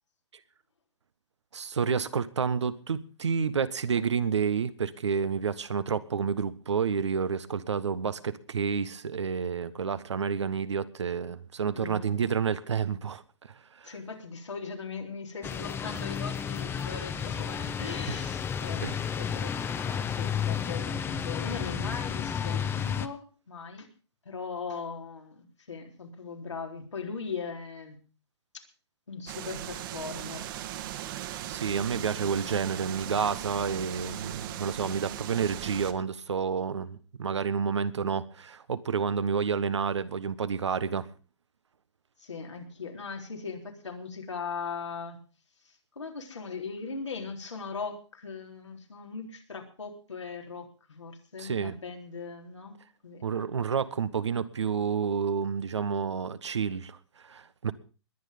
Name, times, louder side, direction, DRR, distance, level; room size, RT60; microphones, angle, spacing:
voice 1, 1.5-13.2 13.8-13.9 18.1-18.2 18.8-19.0 31.5-41.1 51.4-51.7 53.2-57.7, right 6 dB, 80° right, 1.4 m, -29 dB
voice 2, 11.7-12.1 13.8-23.9 24.3-28.0 29.1-30.5 42.2-45.2 46.0-52.8 53.0-53.4, left 5 dB, 85° left, 3.9 m, -39 dB
sound 1, 15.4-23.1, left 7 dB, 15° left, 1.0 m, -32 dB
sound 2, 29.3-35.9, right 12 dB, 50° right, 1.7 m, -38 dB
21.0 x 9.4 x 5.2 m
hypercardioid pair, 120°, 15 cm